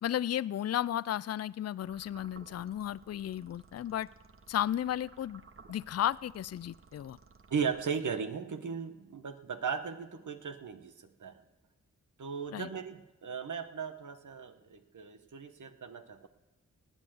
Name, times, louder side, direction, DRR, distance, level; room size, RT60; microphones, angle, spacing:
voice 1, 0.0-4.1 4.5-5.4 5.7-7.2 12.5-12.7, left 11 dB, 50° left, 20 dB, 0.4 m, -34 dB
sound 1, 1.8-8.3, right 4 dB, 40° right, 1.1 m, -58 dB
voice 2, 7.5-11.4 12.2-16.3, right 6 dB, 65° right, 9 dB, 1.3 m, -37 dB
18.0 x 9.0 x 7.8 m, 1.0 s
cardioid pair, 50°, 32 cm